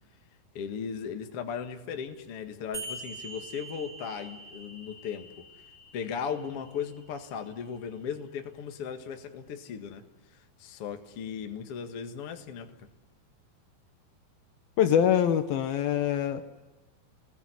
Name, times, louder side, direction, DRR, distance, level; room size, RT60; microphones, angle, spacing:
voice 1, 0.5-5.3 5.9-10.1 10.6-12.9, left 7 dB, 50° left, 6 dB, 2.0 m, -37 dB
sound 1, 2.7-7.7, right 2 dB, 5° right, 5.3 m, -45 dB
voice 2, 14.8-16.4, left 9 dB, 70° left, 9 dB, 2.8 m, -24 dB
29.0 x 20.5 x 9.7 m, 1.2 s
omnidirectional pair, 4.7 m